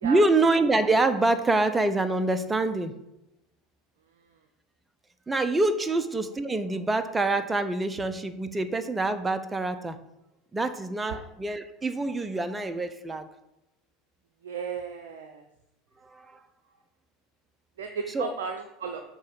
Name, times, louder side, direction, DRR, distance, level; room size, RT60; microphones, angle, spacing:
voice 1, 0.0-3.0 5.3-10.0 10.5-13.3 16.0-16.4 18.1-18.4, right 2 dB, 15° right, 11 dB, 0.6 m, -26 dB
voice 2, 14.4-15.4 17.8-19.0, right 6 dB, 75° right, 4 dB, 0.5 m, -35 dB
6.3 x 3.2 x 5.4 m, 0.91 s
hypercardioid pair, 80°, 0 cm